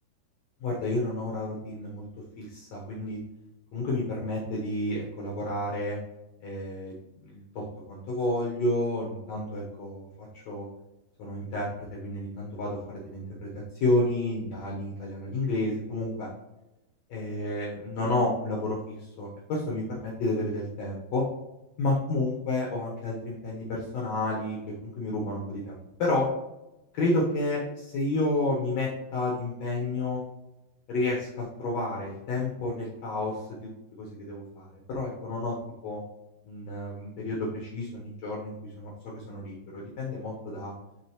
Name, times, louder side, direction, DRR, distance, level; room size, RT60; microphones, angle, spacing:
voice 1, 0.6-2.0 2.4-3.2 3.7-6.0 6.4-10.7 11.2-13.5 13.8-16.3 17.1-21.2 21.8-26.3 26.9-30.2 30.9-33.4 34.0-35.6 35.8-36.0 36.5-40.7, left 2 dB, 85° left, -3 dB, 1.5 m, -30 dB
11.5 x 3.9 x 3.1 m, 0.97 s
omnidirectional pair, 5.0 m